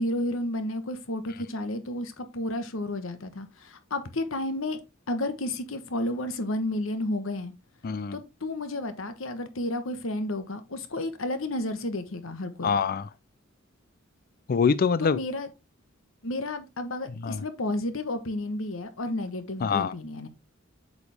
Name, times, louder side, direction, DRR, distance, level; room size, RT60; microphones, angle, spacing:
voice 1, 0.0-4.8 5.1-7.5 8.1-12.7 15.0-15.5 16.2-20.3, left 1 dB, 85° left, 1.2 m, -31 dB
voice 2, 7.8-8.2 12.6-13.1 14.5-15.2 17.2-17.4 19.6-19.9, left 5 dB, 45° left, 0.4 m, -24 dB
8.1 x 5.0 x 3.4 m
head